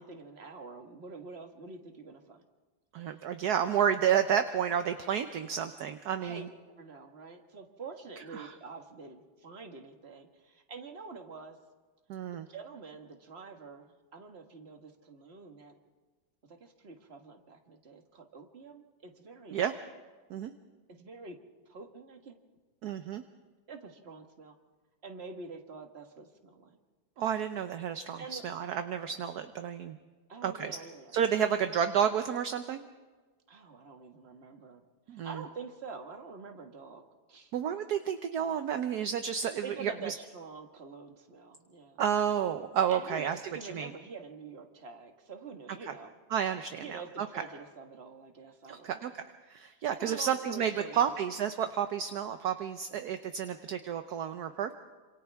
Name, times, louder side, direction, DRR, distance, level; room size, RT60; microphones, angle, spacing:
voice 1, 0.0-2.4 3.1-3.4 6.2-6.4 6.7-11.6 12.5-15.7 16.4-19.7 21.0-21.4 21.6-22.4 23.7-24.6 25.0-26.8 28.2-28.5 30.3-31.1 33.5-37.0 37.3-37.5 39.6-42.0 42.9-46.1 46.8-49.1 49.7-51.1, right 4 dB, 35° right, 4 dB, 1.8 m, -46 dB
voice 2, 2.9-6.5 8.4-8.5 12.1-12.4 19.5-19.7 20.3-20.5 22.8-23.2 27.2-30.0 30.4-30.8 31.1-32.8 35.1-35.4 37.5-40.1 42.0-43.4 43.7-43.9 46.3-47.3 48.7-49.2 49.5-54.7, right 8 dB, 65° right, 8 dB, 1.2 m, -31 dB
27.5 x 26.5 x 3.5 m, 1.3 s
omnidirectional pair, 2.0 m